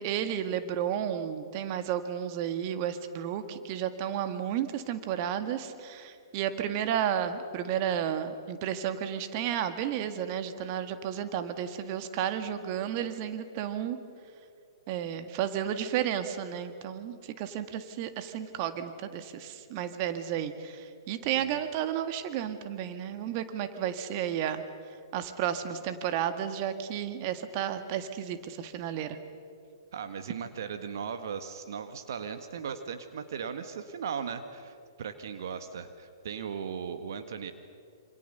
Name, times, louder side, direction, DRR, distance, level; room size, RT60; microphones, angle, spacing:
voice 1, 0.0-14.0 14.9-24.6 24.9-29.2, right 9 dB, 40° right, 9 dB, 1.9 m, -32 dB
voice 2, 29.9-37.5, right 7 dB, 60° right, 9 dB, 1.6 m, -37 dB
27.5 x 27.0 x 6.9 m, 2.4 s
figure-of-eight pair, 115°, 2 cm